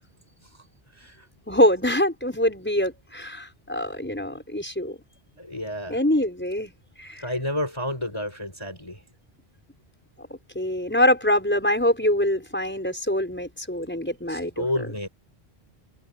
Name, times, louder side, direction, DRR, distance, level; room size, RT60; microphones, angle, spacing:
voice 1, 1.5-5.0 5.9-6.7 7.0-7.2 10.2-10.3 10.5-14.7, left 1 dB, 10° left, 5.6 m, -24 dB
voice 2, 5.4-6.0 7.2-9.0 14.3-15.1, left 1 dB, 25° left, 4.9 m, -30 dB
omnidirectional pair, 1.1 m